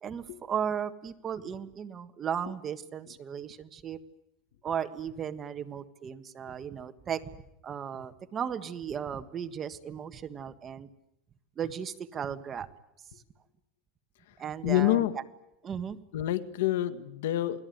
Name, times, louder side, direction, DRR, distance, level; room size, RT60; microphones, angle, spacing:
voice 1, 0.0-4.0 4.6-7.3 7.6-10.9 11.6-12.7 14.4-15.0 15.6-16.0, right 8 dB, 25° right, 10 dB, 1.6 m, -35 dB
voice 2, 14.6-15.2 16.1-17.6, left 14 dB, 90° left, 11 dB, 1.7 m, -27 dB
28.5 x 20.0 x 9.4 m, 0.82 s
supercardioid pair, 155°, 0 cm